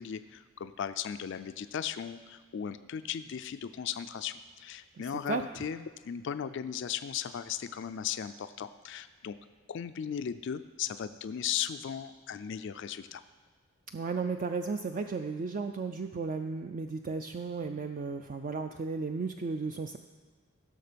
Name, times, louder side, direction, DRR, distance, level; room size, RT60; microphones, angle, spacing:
voice 1, 0.0-5.8 6.0-9.4 9.7-13.2, left 8 dB, 60° left, 12 dB, 0.4 m, -37 dB
voice 2, 5.0-5.7 13.9-20.0, right 4 dB, 40° right, 6 dB, 0.4 m, -34 dB
16.0 x 6.6 x 5.1 m, 1.4 s
head